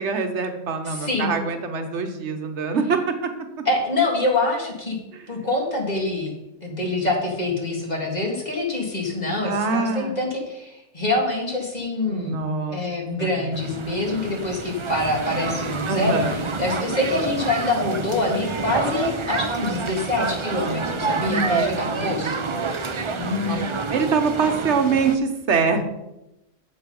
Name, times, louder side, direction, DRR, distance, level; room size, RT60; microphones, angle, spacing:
voice 1, 0.0-3.3 3.6-3.7 5.1-5.2 9.4-10.2 12.1-12.8 13.2-13.4 15.9-16.3 21.2-21.7 22.0-22.4 23.5-23.6 23.9-25.8, right 4 dB, 65° right, 6 dB, 1.4 m, -24 dB
voice 2, 0.8-1.3 3.7-5.0 5.3-12.4 12.7-22.5 23.2-23.7, left 2 dB, 35° left, -1 dB, 2.2 m, -25 dB
sound 1, 13.5-25.2, right 4 dB, 35° right, 0.5 m, -28 dB
7.9 x 7.6 x 5.4 m, 0.90 s
omnidirectional pair, 1.3 m